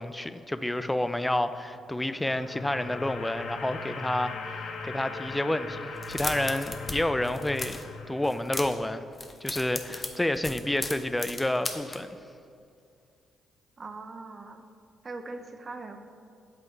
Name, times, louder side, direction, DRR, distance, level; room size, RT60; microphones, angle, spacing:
voice 1, 0.0-7.8 8.1-9.0 9.4-12.2, left 1 dB, 10° left, 11 dB, 0.3 m, -29 dB
sound 1, 1.8-8.9, left 4 dB, 65° left, 0.6 m, -40 dB
sound 2, 6.0-7.0 7.2-7.9 8.2-8.9 9.1-12.0, left 2 dB, 30° left, 0.7 m, -35 dB
voice 2, 13.8-14.6 15.0-16.0, right 3 dB, 40° right, 6 dB, 0.6 m, -40 dB
8.0 x 3.5 x 4.5 m, 2.4 s
hypercardioid pair, 45°, 0 cm